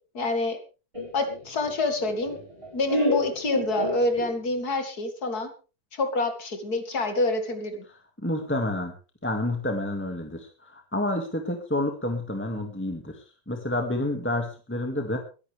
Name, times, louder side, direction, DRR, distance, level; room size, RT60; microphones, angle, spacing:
voice 1, 0.1-0.6 1.1-2.4 2.7-5.5 5.9-7.8, left 2 dB, 50° left, 7 dB, 2.7 m, -27 dB
Laughter, 0.9-4.6, left 1 dB, 15° right, 4.3 m, -30 dB
voice 2, 8.2-9.0 9.2-15.2, left 1 dB, 5° left, 4 dB, 1.9 m, -29 dB
22.0 x 11.0 x 3.5 m, 0.34 s
omnidirectional pair, 2.2 m